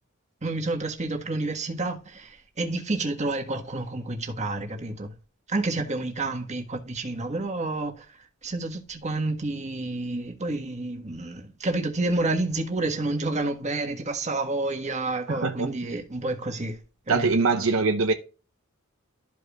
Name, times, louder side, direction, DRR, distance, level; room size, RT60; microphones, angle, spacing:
voice 1, 0.4-5.1 5.5-7.9 8.4-16.8 17.1-17.3, right 2 dB, 35° right, 1.5 m, -29 dB
voice 2, 15.3-15.7 17.1-18.1, right 4 dB, 70° right, 0.8 m, -23 dB
13.0 x 5.1 x 2.4 m
head